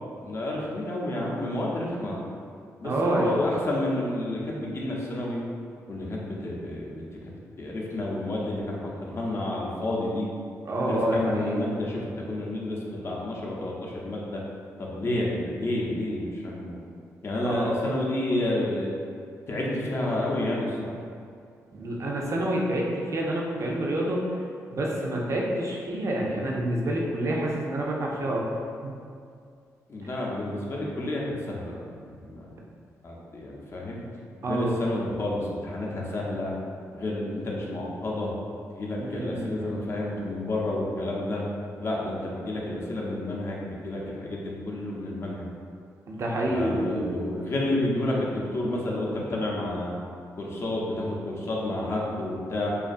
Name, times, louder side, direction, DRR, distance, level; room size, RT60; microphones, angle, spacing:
voice 1, 0.2-2.2 2.8-5.4 5.9-7.0 7.6-10.3 10.8-14.4 14.8-16.8 17.2-18.9 19.5-21.0 29.9-32.5 33.0-34.0 34.4-36.5 36.9-38.3 38.7-41.5 41.8-45.5 46.4-49.9 50.4-52.7, left 1 dB, 40° left, -3 dB, 0.6 m, -30 dB
voice 2, 2.8-3.4 10.7-11.7 15.1-15.2 17.6-17.8 21.7-24.2 24.7-28.4 28.8-28.9 34.4-34.7 39.0-39.7 46.1-47.2, right 1 dB, 50° right, -2 dB, 0.5 m, -28 dB
2.4 x 2.3 x 2.5 m, 2.3 s
supercardioid pair, 60°, 6 cm